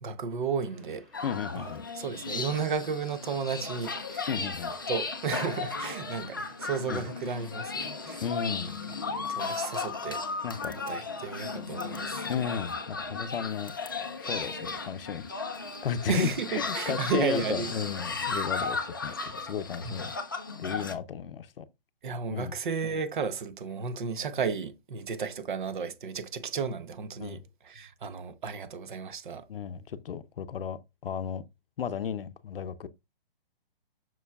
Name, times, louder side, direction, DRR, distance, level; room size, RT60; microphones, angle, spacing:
voice 1, 0.0-1.1 1.6-4.3 4.9-8.2 9.3-10.2 10.9-12.2 16.0-17.7 19.8-20.0 22.0-29.5, right 5 dB, 55° right, 0.9 m, -33 dB
sound 1, 0.6-19.5, left 1 dB, ahead, 1.6 m, -59 dB
sound 2, 1.1-20.9, left 4 dB, 25° left, 0.4 m, -35 dB
voice 2, 1.2-1.9 4.3-4.7 6.9-7.0 8.2-8.8 10.4-10.7 12.3-13.7 14.2-15.3 15.5-20.1 20.6-21.6 22.3-22.5 27.2-27.4 29.5-31.4 31.8-32.9, left 8 dB, 65° left, 0.6 m, -34 dB
6.9 x 6.1 x 2.3 m
hypercardioid pair, 170°, 30 cm